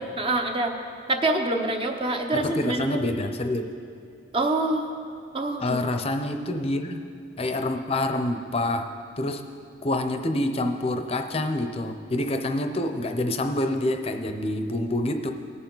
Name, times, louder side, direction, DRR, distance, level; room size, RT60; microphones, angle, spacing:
voice 1, 0.2-0.7 1.1-2.8 4.3-4.9 5.3-5.6, right 2 dB, 30° right, 4 dB, 0.8 m, -25 dB
voice 2, 2.3-3.6 5.6-7.0 7.4-8.9 9.2-9.4 9.8-15.3, left 1 dB, 30° left, 6 dB, 0.6 m, -27 dB
19.0 x 7.0 x 3.9 m, 2.6 s
head